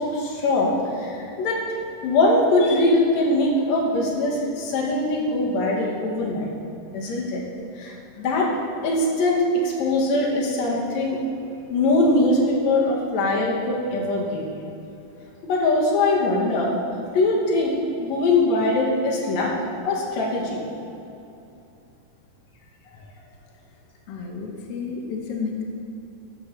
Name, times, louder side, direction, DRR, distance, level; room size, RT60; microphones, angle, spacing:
voice 1, 0.0-1.6 2.0-6.5 6.9-7.4 7.8-8.5 8.8-11.2 11.7-14.5 15.4-16.8 17.1-17.7 18.0-19.5 19.8-20.6, left 2 dB, 65° left, -2 dB, 2.0 m, -22 dB
voice 2, 24.1-25.6, left 5 dB, 85° left, 0 dB, 1.3 m, -31 dB
11.5 x 6.3 x 3.2 m, 2.8 s
omnidirectional pair, 3.9 m